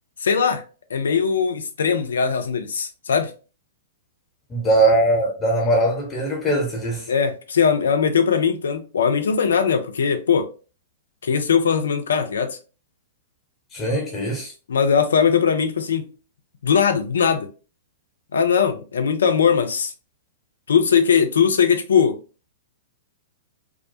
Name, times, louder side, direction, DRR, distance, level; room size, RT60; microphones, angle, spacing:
voice 1, 0.2-0.6 0.9-3.3 7.1-10.5 11.2-12.6 14.7-16.1 16.6-17.5 18.3-19.9 20.7-22.2, left 6 dB, 75° left, 0.4 m, -20 dB
voice 2, 4.5-7.1 13.7-14.5, right 1 dB, 20° left, 0.9 m, -21 dB
2.4 x 2.1 x 2.6 m
figure-of-eight pair, 110°, 0 cm